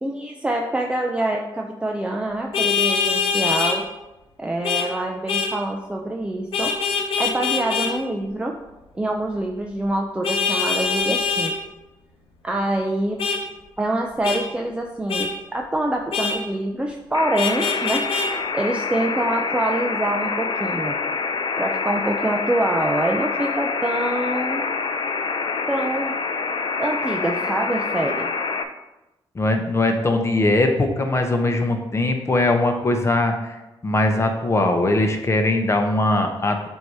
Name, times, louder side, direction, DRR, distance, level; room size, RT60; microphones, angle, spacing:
voice 1, 0.0-3.8 4.4-6.7 7.2-8.5 8.9-11.5 12.4-13.2 13.8-18.1 18.5-21.0 21.6-24.6 25.7-26.1 26.8-28.3, right 1 dB, 10° right, 1 dB, 0.5 m, -25 dB
Vehicle horn car horn honking, 2.5-3.8 4.6-4.9 5.3-5.5 6.5-7.9 10.2-11.5 13.2-13.4 14.2-14.4 15.1-15.3 16.1-16.4 17.4-18.3, left 5 dB, 80° left, 0.8 m, -23 dB
sound 1, 17.1-28.6, left 4 dB, 55° left, 0.5 m, -26 dB
voice 2, 29.3-33.6 33.8-36.7, left 2 dB, 30° left, 5 dB, 0.9 m, -20 dB
7.5 x 2.8 x 4.8 m, 1.0 s
cardioid pair, 95°, 9 cm